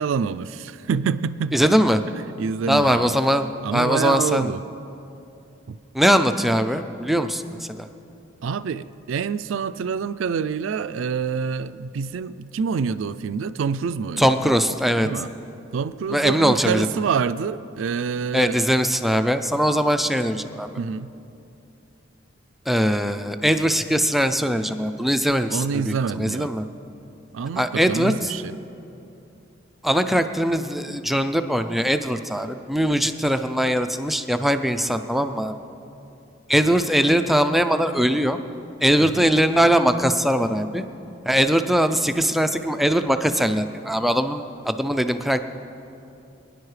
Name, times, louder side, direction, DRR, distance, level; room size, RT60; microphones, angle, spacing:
voice 1, 0.0-1.7 2.1-3.2 3.6-4.6 5.7-5.8 8.4-14.4 15.0-15.3 15.7-18.6 20.8-21.1 25.5-26.5 27.3-28.6 39.0-39.3, right 6 dB, 85° right, 14 dB, 0.4 m, -27 dB
voice 2, 1.5-2.0 2.7-4.5 5.9-7.4 7.7-7.9 14.2-15.1 16.1-17.1 18.3-20.7 22.7-26.6 27.6-28.3 29.8-35.6 36.5-38.4 38.8-40.8 41.3-45.4, equal, ahead, 8 dB, 0.4 m, -21 dB
23.0 x 10.0 x 3.2 m, 2.7 s
head